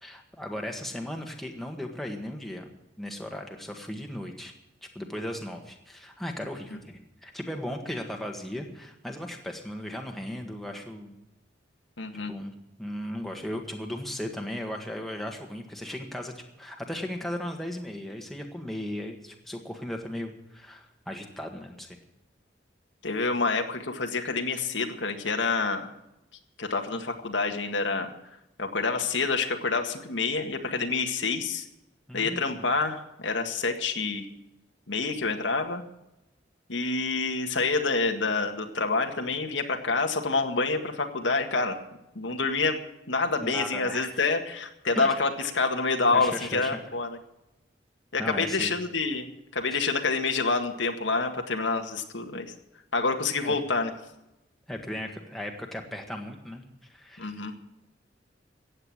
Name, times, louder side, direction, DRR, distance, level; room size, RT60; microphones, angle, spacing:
voice 1, 0.0-2.7 3.0-4.5 5.0-11.1 12.1-12.5 12.8-16.3 16.6-22.0 32.1-32.7 43.4-44.2 45.0-45.2 46.1-46.8 48.2-48.7 53.4-53.6 54.7-56.6 56.9-57.4, left 1 dB, ahead, 2 dB, 1.6 m, -36 dB
voice 2, 12.0-12.3 23.0-25.9 26.6-28.1 28.6-31.7 32.1-34.3 34.9-35.8 36.7-41.8 42.2-42.8 43.1-47.2 48.1-49.3 49.5-52.5 52.9-53.9 57.2-57.5, left 3 dB, 90° left, 4 dB, 1.8 m, -27 dB
15.0 x 9.0 x 7.5 m, 0.91 s
head